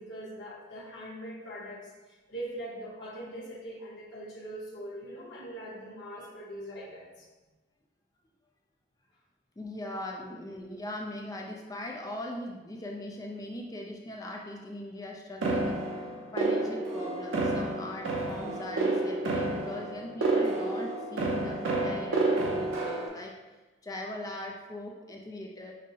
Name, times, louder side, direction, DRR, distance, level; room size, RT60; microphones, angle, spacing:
voice 1, 0.0-7.3, right 1 dB, 55° left, -7 dB, 1.0 m, -42 dB
voice 2, 9.6-15.8 16.3-23.3 23.8-25.7, left 1 dB, 20° left, 0 dB, 0.3 m, -40 dB
sound 1, 15.4-23.1, right 2 dB, 80° right, 0.6 m, -30 dB
5.3 x 2.0 x 2.7 m, 1.2 s
head